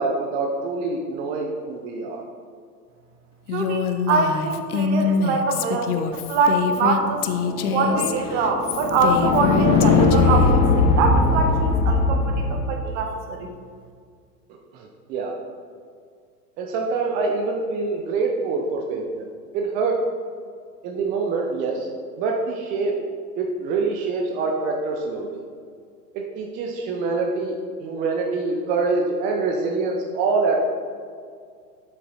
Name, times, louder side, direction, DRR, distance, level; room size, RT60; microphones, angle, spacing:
voice 1, 0.0-2.2 14.5-15.3 16.6-19.2 19.5-20.0 20.8-21.9 22.2-22.9 23.4-25.4 26.1-30.6, right 4 dB, 20° right, 1 dB, 0.4 m, -25 dB
Female speech woman speaking, 3.5-10.5, left 6 dB, 65° left, 0.7 m, -25 dB
voice 2, 3.5-7.2 7.7-13.5, right 4 dB, 45° right, 3 dB, 1.3 m, -24 dB
sound 1, 7.1-12.7, left 3 dB, 50° left, 1.4 m, -20 dB
7.8 x 5.5 x 4.1 m, 2.1 s
hypercardioid pair, 105°, 49 cm